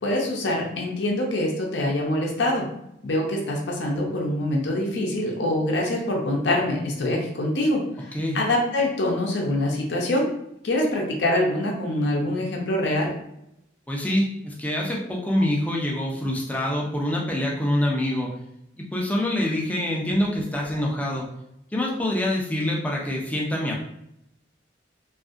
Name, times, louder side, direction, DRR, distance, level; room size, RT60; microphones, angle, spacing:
voice 1, 0.0-2.7 3.0-8.1 8.3-10.3 10.6-13.1, left 1 dB, 65° left, -1 dB, 0.6 m, -24 dB
voice 2, 13.9-18.3 18.9-21.3 21.7-23.8, left 1 dB, 10° left, -2 dB, 0.4 m, -25 dB
2.6 x 2.4 x 2.4 m, 0.80 s
head